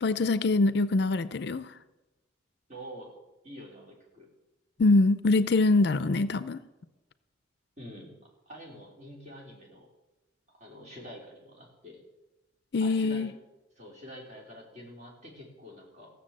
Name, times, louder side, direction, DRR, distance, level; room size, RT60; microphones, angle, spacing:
voice 1, 0.0-1.7 4.8-6.6 12.7-13.3, left 3 dB, 55° left, 14 dB, 0.5 m, -24 dB
voice 2, 2.7-3.1 3.4-4.3 7.8-8.1 8.5-9.9 10.6-12.0 12.8-13.3 13.8-16.1, equal, 35° right, -2 dB, 3.7 m, -46 dB
15.5 x 7.1 x 7.5 m, 1.0 s
head